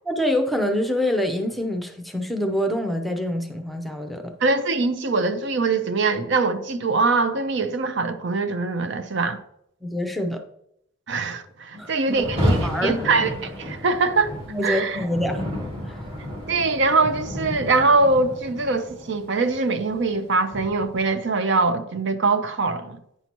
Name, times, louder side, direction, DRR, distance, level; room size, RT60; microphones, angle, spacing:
voice 1, 0.1-4.3 9.8-10.4 11.7-12.2 12.6-13.1 14.5-15.4 15.9-16.0, left 1 dB, ahead, 0.6 m, -25 dB
voice 2, 4.4-9.4 11.1-14.3 14.6-15.0 16.5-23.0, right 3 dB, 60° right, 0.6 m, -23 dB
Rain, 12.1-21.2, equal, 30° right, 2.2 m, -31 dB
9.2 x 5.6 x 3.0 m
head